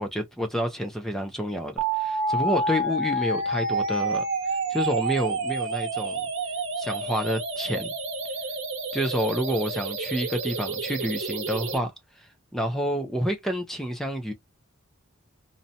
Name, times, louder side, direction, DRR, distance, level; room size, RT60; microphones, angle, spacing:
voice 1, 0.0-4.2 4.7-6.2 6.8-7.9 8.9-11.9 12.5-14.3, equal, ahead, 0.4 m, -29 dB
sound 1, 1.8-11.8, right 2 dB, 65° right, 0.8 m, -29 dB
2.6 x 2.1 x 2.7 m
head